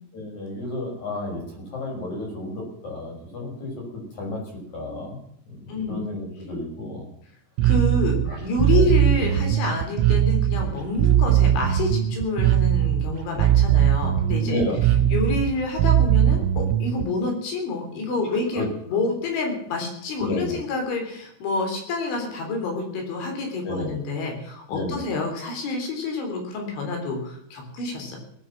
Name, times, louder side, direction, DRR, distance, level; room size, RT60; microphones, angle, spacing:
voice 1, 0.1-4.4 4.7-7.1 8.2-8.4 8.7-8.9 14.4-15.0 18.3-18.7 20.2-20.6 23.6-23.9 24.7-25.1, left 1 dB, 35° left, -1 dB, 7.2 m, -32 dB
voice 2, 7.6-14.6 15.1-28.2, left 3 dB, 65° left, 2 dB, 5.9 m, -28 dB
Bass guitar, 7.6-17.1, right 11 dB, 85° right, 3.3 m, -20 dB
19.0 x 8.9 x 7.4 m, 0.73 s
omnidirectional pair, 5.8 m